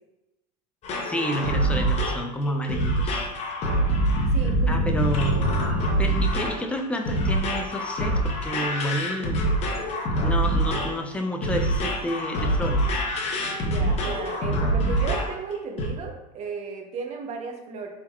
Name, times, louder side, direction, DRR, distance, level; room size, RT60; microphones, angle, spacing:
sound 1, 0.8-15.4 15.8-15.9, right 1 dB, 30° left, 0.8 m, -25 dB
voice 1, 1.0-3.3 4.7-5.4 6.0-9.4 10.2-12.9, equal, 5° left, 3 dB, 0.4 m, -30 dB
voice 2, 4.3-4.7 13.6-17.9, right 5 dB, 30° right, 3 dB, 0.8 m, -35 dB
4.2 x 3.6 x 2.3 m, 0.96 s
supercardioid pair, 115°, 21 cm